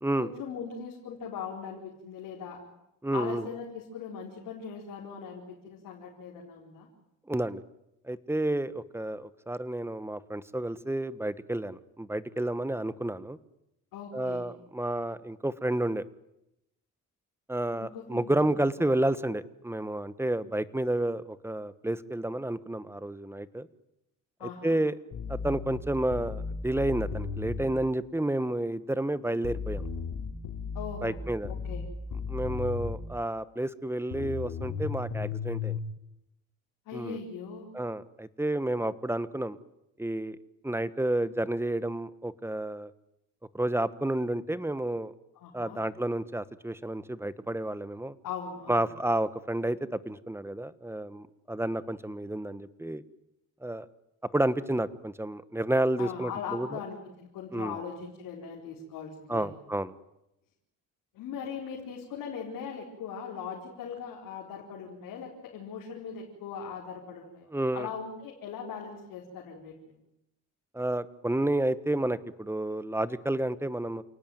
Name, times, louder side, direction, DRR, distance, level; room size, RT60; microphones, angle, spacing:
voice 1, 0.2-2.6 3.1-6.9 13.9-14.5 17.8-18.5 24.4-24.8 30.7-31.2 31.5-31.8 36.9-37.7 45.4-45.8 48.2-48.9 56.0-59.5 61.1-67.5 67.7-69.9, left 6 dB, 90° left, -2 dB, 4.4 m, -40 dB
voice 2, 3.0-3.5 7.3-7.6 8.0-13.4 14.1-16.0 17.5-23.7 24.6-24.9 25.3-29.8 31.0-31.5 32.3-35.8 36.9-37.2 37.7-39.6 40.0-40.4 40.6-42.9 43.5-45.1 45.5-48.2 48.7-53.0 53.6-53.8 54.3-56.7 57.5-57.8 59.3-59.9 67.5-67.9 70.7-74.0, right 1 dB, 10° right, 15 dB, 1.3 m, -30 dB
sound 1, 25.1-27.7 29.4-33.1 34.1-35.8, left 5 dB, 75° left, 4.9 m, -35 dB
29.0 x 18.5 x 9.4 m, 0.88 s
cardioid pair, 90°, 32 cm